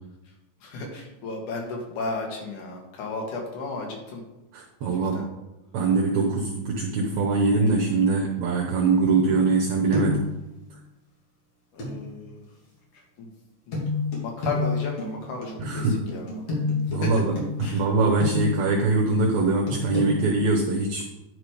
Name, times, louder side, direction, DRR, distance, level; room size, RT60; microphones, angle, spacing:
voice 1, 0.6-4.2 4.8-5.3 11.7-12.5 13.2-13.3 13.7-13.8 14.2-15.9 16.1-16.4 17.0-17.2 17.6-17.8, left 3 dB, 75° left, 0 dB, 3.1 m, -34 dB
voice 2, 4.5-5.3 5.7-10.3 15.6-16.1 16.9-21.1, right 3 dB, 70° right, -1 dB, 2.1 m, -23 dB
sound 1, 9.1-9.6 9.9-10.3 11.8-11.9 13.7-18.7 19.7-20.1, left 3 dB, 50° left, 3.3 m, -29 dB
10.0 x 4.6 x 4.9 m, 1.0 s
omnidirectional pair, 3.6 m